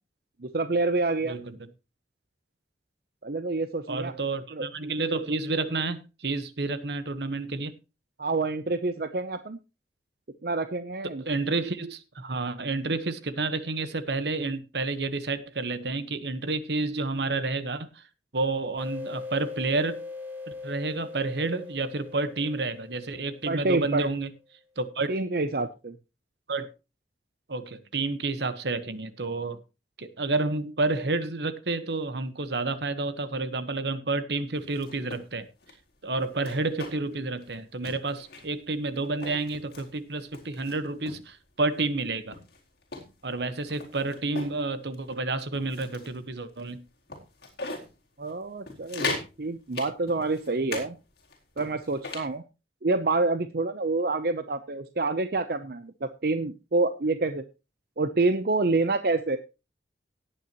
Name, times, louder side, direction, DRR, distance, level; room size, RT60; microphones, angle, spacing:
voice 1, 0.4-1.4 3.2-4.1 4.5-4.7 8.2-9.6 10.4-11.2 23.5-24.1 25.1-26.0 48.2-51.0 51.6-52.4 52.8-57.4 58.0-59.4, right 3 dB, 55° right, 0.7 m, -27 dB
voice 2, 1.2-1.6 3.9-7.8 11.2-18.1 18.3-20.0 20.6-24.3 24.8-25.2 26.5-26.7 27.5-29.6 30.0-35.5 36.0-42.4 43.2-46.8, right 3 dB, 75° right, 1.2 m, -30 dB
sound 1, 18.8-24.1, left 3 dB, 10° right, 2.5 m, -41 dB
sound 2, 34.5-35.2 35.6-35.7 36.2-37.2 37.4-37.6 37.8-38.6 39.0-39.9 40.3-41.2 41.8-41.9 42.3-44.6 44.9-45.1 45.5-46.2 46.6-46.7 47.1-47.9 48.3-48.4 48.7-49.3 49.7-50.9 51.2-52.3, left 3 dB, 60° left, 4.3 m, -38 dB
17.5 x 9.0 x 3.0 m
head